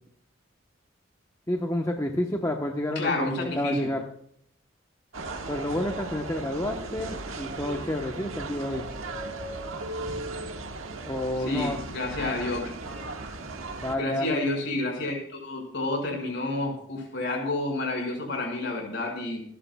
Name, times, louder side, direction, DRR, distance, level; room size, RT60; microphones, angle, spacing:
voice 1, 1.5-4.0 5.5-8.9 11.1-11.8 12.2-12.4 13.8-14.4, left 1 dB, 15° left, 1 dB, 1.0 m, -30 dB
voice 2, 3.0-3.9 11.5-12.7 14.0-19.4, left 2 dB, 60° left, 1 dB, 5.8 m, -30 dB
sound 1, 5.1-14.0, right 2 dB, 90° right, 1.7 m, -36 dB
28.0 x 11.5 x 2.3 m, 0.67 s
head